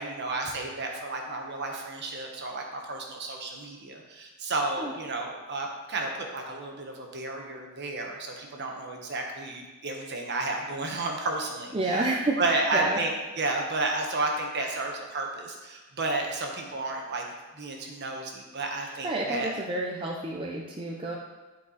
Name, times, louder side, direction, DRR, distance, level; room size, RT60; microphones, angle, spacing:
voice 1, 0.0-13.1 13.4-17.2 17.5-19.5, right 2 dB, 50° right, 1 dB, 1.2 m, -32 dB
voice 2, 11.7-13.0 18.8-21.2, right 2 dB, 25° right, -2 dB, 0.6 m, -30 dB
11.0 x 4.7 x 4.1 m, 1.2 s
head